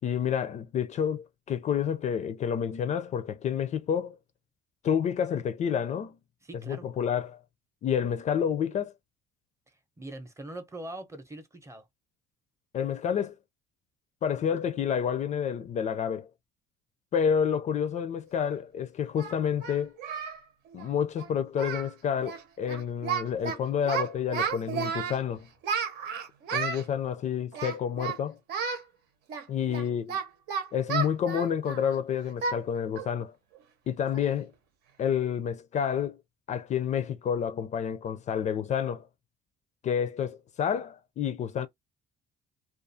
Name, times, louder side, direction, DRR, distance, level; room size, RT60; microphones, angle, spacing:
voice 1, 0.0-4.1 4.8-6.2 6.7-7.4 7.8-8.9 12.7-13.3 14.2-16.3 17.1-19.9 20.7-25.5 26.5-28.4 29.5-30.2 30.7-33.3 33.9-34.5 35.0-36.2 36.5-39.1 39.8-41.7, left 8 dB, 45° left, 0.4 m, -29 dB
voice 2, 6.4-6.9 10.0-11.9, right 1 dB, 15° right, 0.7 m, -42 dB
Singing, 18.4-18.5 19.2-20.4 20.7-20.9 21.2-21.3 21.5-21.9 22.2-22.4 22.7-23.6 23.9-25.2 25.6-26.8 27.5-28.2 28.5-28.8 29.3-31.9 32.4-32.6 33.0-33.1 33.6-33.7 34.1-34.4, right 6 dB, 80° right, 0.9 m, -32 dB
2.4 x 2.3 x 2.6 m
cardioid pair, 110°, 17 cm